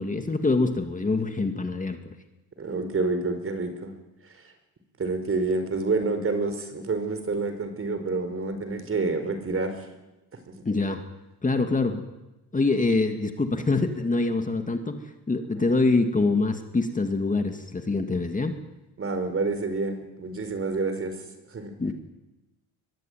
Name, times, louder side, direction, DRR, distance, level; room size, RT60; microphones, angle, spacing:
voice 1, 0.0-2.1 10.6-11.0 11.4-12.0 12.5-18.6 21.8-21.9, left 3 dB, 20° left, 6 dB, 2.5 m, -25 dB
voice 2, 2.6-3.9 4.3-4.4 5.0-9.9 10.5-10.6 15.5-15.6 19.0-21.2 21.5-21.7, right 3 dB, 35° right, 8 dB, 5.0 m, -28 dB
23.5 x 22.5 x 9.4 m, 1.0 s
cardioid pair, 110°, 36 cm